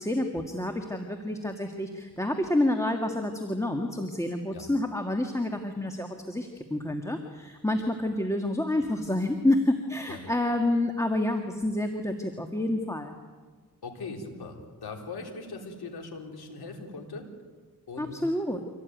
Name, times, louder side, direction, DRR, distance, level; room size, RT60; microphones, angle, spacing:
voice 1, 0.0-13.2 18.0-18.6, left 1 dB, 10° left, 4 dB, 1.9 m, -28 dB
voice 2, 13.8-17.3 17.9-18.2, left 3 dB, 90° left, 2 dB, 3.9 m, -40 dB
25.5 x 17.5 x 9.4 m, 1.5 s
cardioid pair, 85°, 37 cm